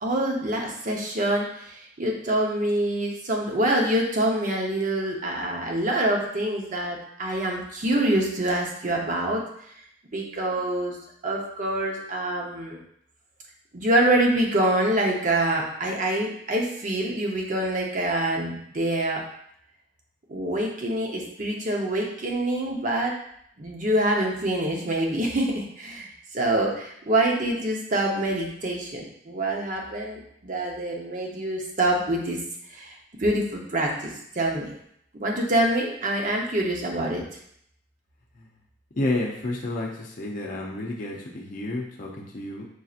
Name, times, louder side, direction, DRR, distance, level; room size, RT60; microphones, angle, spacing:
voice 1, 0.0-9.4 10.1-11.0 11.2-12.8 13.7-19.2 20.3-23.1 23.6-32.4 32.7-34.7 35.2-37.2, right 1 dB, 45° right, -1 dB, 0.8 m, -26 dB
voice 2, 39.0-42.6, left 2 dB, 50° left, -1 dB, 0.6 m, -30 dB
6.2 x 2.8 x 2.4 m, 0.69 s
head